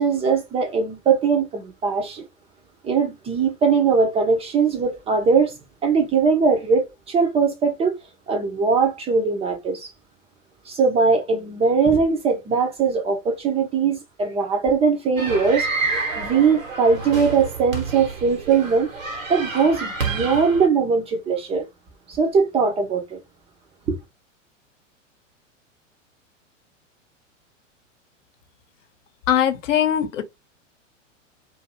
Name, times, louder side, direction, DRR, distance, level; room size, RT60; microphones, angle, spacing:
voice 1, 0.0-2.2 2.8-5.5 5.8-7.9 8.3-9.9 10.7-18.9 19.3-21.7 22.1-23.2 23.9-24.0, right 5 dB, 15° right, 0.4 m, -20 dB
sound 1, 15.2-20.7, right 4 dB, 90° right, 1.1 m, -29 dB
voice 2, 29.3-30.2, left 9 dB, 70° left, 0.8 m, -20 dB
2.5 x 2.5 x 2.7 m
hypercardioid pair, 100°, 39 cm